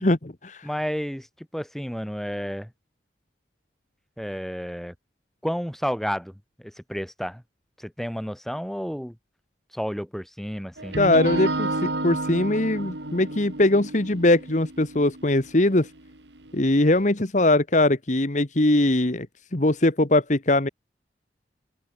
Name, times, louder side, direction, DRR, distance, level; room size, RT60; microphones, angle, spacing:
voice 1, 0.0-0.7 11.0-15.9 16.5-19.3 19.5-20.7, left 2 dB, 45° left, 1.4 m, -21 dB
voice 2, 0.6-2.7 4.2-4.9 5.4-7.4 7.8-9.2 9.7-11.0, equal, ahead, 6.7 m, -31 dB
sound 1, 10.8-16.7, right 2 dB, 85° right, 3.6 m, -31 dB
open air
head